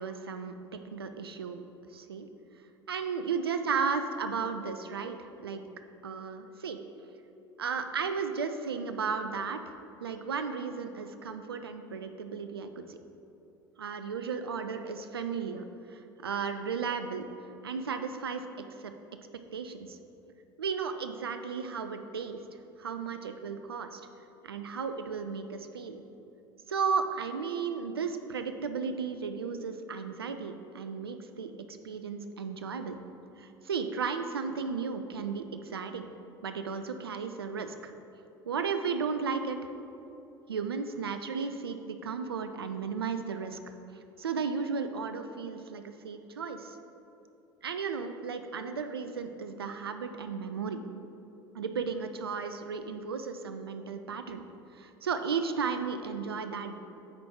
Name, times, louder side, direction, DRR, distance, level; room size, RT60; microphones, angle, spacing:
voice 1, 0.0-1.6 1.9-2.3 2.9-5.7 6.0-6.8 7.6-9.6 10.0-13.0 13.8-17.3 17.6-18.5 18.8-18.9 19.5-20.0 20.6-22.4 22.8-24.0 24.4-26.0 26.7-33.0 33.4-36.1 36.4-37.9 38.5-39.6 40.5-43.6 44.2-46.8 47.6-50.8 51.5-54.4 54.7-56.7, right 5 dB, 90° right, 8 dB, 0.4 m, -34 dB
9.5 x 4.2 x 4.5 m, 2.9 s
hypercardioid pair, 65°, 12 cm